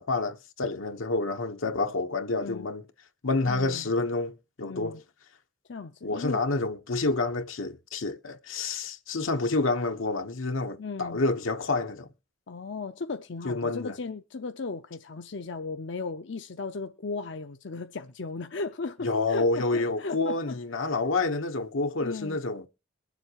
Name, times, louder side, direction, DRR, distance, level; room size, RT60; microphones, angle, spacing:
voice 1, 0.0-2.8 3.2-5.0 6.0-12.1 13.4-13.9 19.0-22.7, left 3 dB, 90° left, 1.2 m, -28 dB
voice 2, 2.4-2.7 3.5-3.9 4.6-5.0 5.7-6.4 10.8-11.2 12.5-20.6 20.8-20.9 22.0-22.4, left 4 dB, 65° left, 0.6 m, -36 dB
22.5 x 7.5 x 3.0 m
head